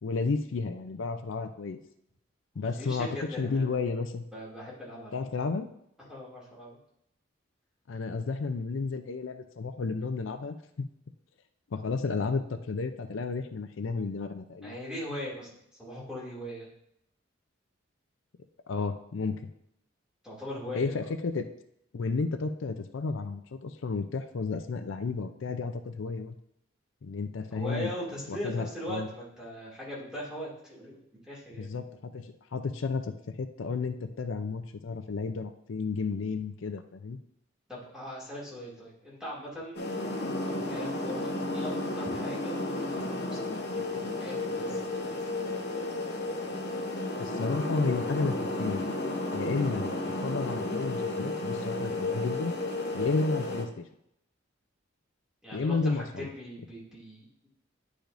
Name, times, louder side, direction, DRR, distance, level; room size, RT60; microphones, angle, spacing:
voice 1, 0.0-1.8 2.6-3.1 3.4-4.2 5.1-5.7 7.9-10.9 11.7-14.7 18.7-19.5 20.7-21.5 21.9-26.4 27.0-27.9 28.3-29.1 31.6-37.2 47.1-48.9 49.3-49.9 50.2-52.5 52.9-53.7 55.5-56.3, left 4 dB, 80° left, 8 dB, 0.5 m, -32 dB
voice 2, 2.5-3.8 4.3-5.1 6.1-6.8 14.6-15.5 15.8-16.7 20.2-21.0 27.5-31.7 37.7-39.8 40.4-43.9 44.1-45.1 55.4-57.5, equal, 5° right, -7 dB, 2.4 m, -40 dB
sound 1, 39.7-53.6, left 2 dB, 55° left, 0.9 m, -32 dB
10.5 x 5.0 x 2.6 m, 0.76 s
head